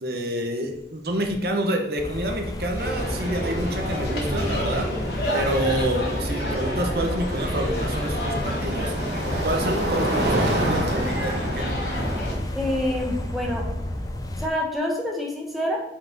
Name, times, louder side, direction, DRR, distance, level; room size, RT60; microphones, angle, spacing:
voice 1, 0.0-4.9 5.3-8.9 9.4-11.8, right 1 dB, 60° right, 3 dB, 1.0 m, -28 dB
sound 1, 0.7-0.8 1.1-1.5 3.3-3.4 6.4-14.5, right 1 dB, 80° right, 1.6 m, -29 dB
sound 2, 2.0-14.5, left 1 dB, 20° left, 0.5 m, -31 dB
sound 3, 2.7-12.3, equal, 65° left, 2.7 m, -30 dB
voice 2, 12.5-13.6 14.4-15.8, left 1 dB, ahead, -1 dB, 1.2 m, -27 dB
5.5 x 5.1 x 5.9 m, 0.87 s
head